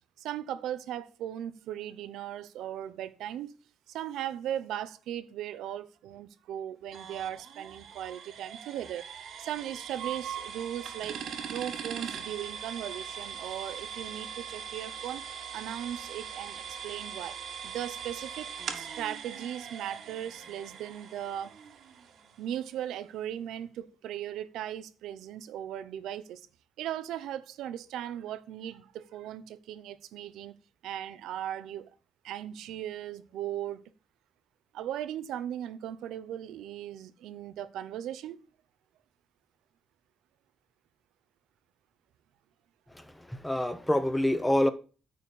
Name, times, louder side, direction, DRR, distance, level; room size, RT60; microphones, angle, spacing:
voice 1, 0.2-3.6 3.9-9.1 9.4-11.2 11.5-15.2 15.5-17.4 17.6-21.5 22.4-26.4 26.8-30.6 30.8-31.9 32.2-33.8 34.7-38.4, right 11 dB, 85° right, 0.8 m, -38 dB
sound 1, 6.9-22.6, right 7 dB, 65° right, 1.6 m, -41 dB
voice 2, 42.9-44.7, left 1 dB, 10° left, 1.0 m, -27 dB
9.4 x 4.4 x 6.9 m
cardioid pair, 90°, 0 cm